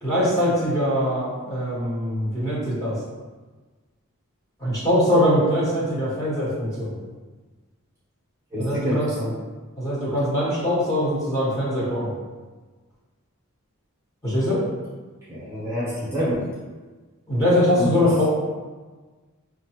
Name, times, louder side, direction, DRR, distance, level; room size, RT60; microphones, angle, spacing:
voice 1, 0.0-2.9 4.6-7.0 8.6-9.1 9.8-12.1 14.2-14.6 17.3-18.2, equal, 15° left, -9 dB, 1.2 m, -22 dB
voice 2, 8.5-9.3 15.3-16.4 17.8-17.9, equal, 10° right, -10 dB, 1.0 m, -27 dB
5.1 x 2.4 x 2.8 m, 1.3 s
head